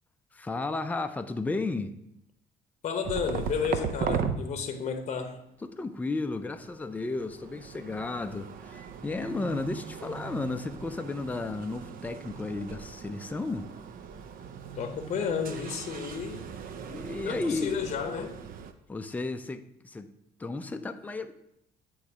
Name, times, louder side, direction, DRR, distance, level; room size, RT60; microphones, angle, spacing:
voice 1, 0.3-2.0 5.6-13.7 16.8-17.8 18.9-20.1 20.4-21.3, left 3 dB, 10° left, 8 dB, 0.4 m, -33 dB
voice 2, 2.8-5.4 14.7-16.5 17.2-18.4, left 6 dB, 40° left, 6 dB, 0.7 m, -32 dB
sound 1, 3.0-4.4 6.0-18.7, right 7 dB, 55° right, 0.5 m, -38 dB
8.4 x 3.1 x 4.7 m, 0.79 s
cardioid pair, 110°, 17 cm